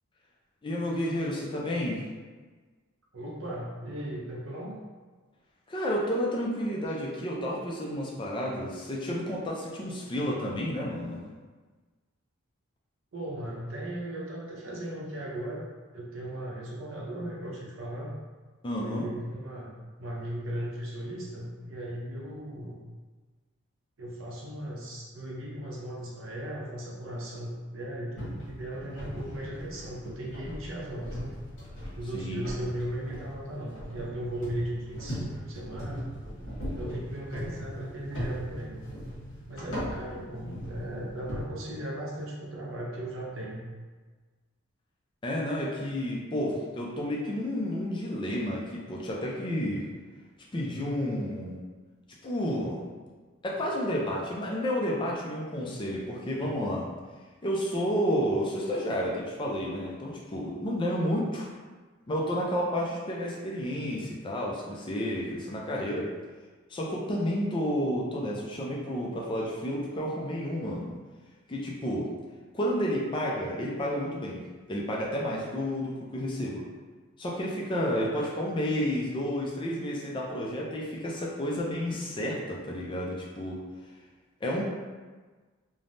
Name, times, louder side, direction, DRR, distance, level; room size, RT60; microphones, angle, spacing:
voice 1, 0.6-2.0 5.7-11.2 18.6-19.1 32.1-32.4 45.2-49.9 50.5-51.6 52.2-52.8 53.4-56.8 57.4-61.5 62.1-66.1 66.7-70.9 71.5-72.1 72.5-76.7 77.2-83.6 84.4-84.6, equal, 25° left, -3 dB, 0.4 m, -31 dB
voice 2, 3.1-4.8 13.1-18.1 18.8-19.7 20.0-22.8 24.0-31.4 32.0-36.1 36.7-38.8 39.5-43.7, right 1 dB, 70° right, -3 dB, 0.7 m, -37 dB
sound 1, 28.2-41.4, equal, 60° left, 1.0 m, -39 dB
3.2 x 2.1 x 2.5 m, 1.4 s
head